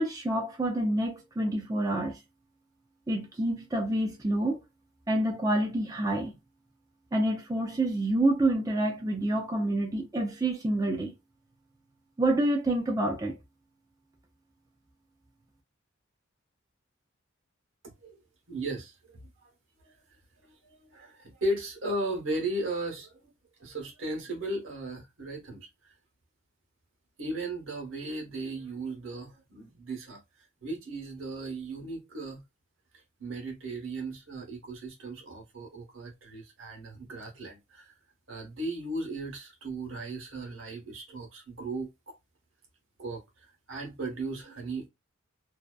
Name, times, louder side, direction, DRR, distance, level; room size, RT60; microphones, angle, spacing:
voice 1, 0.0-2.2 3.1-4.6 5.1-6.3 7.1-11.1 12.2-13.4, right 1 dB, 20° right, 0.4 m, -27 dB
voice 2, 17.8-18.2 18.5-19.5 19.8-23.3 23.6-25.9 27.2-30.2 30.6-32.4 33.2-38.0 38.3-42.1 43.0-44.9, right 2 dB, 70° right, 1.0 m, -36 dB
2.7 x 2.1 x 2.2 m
head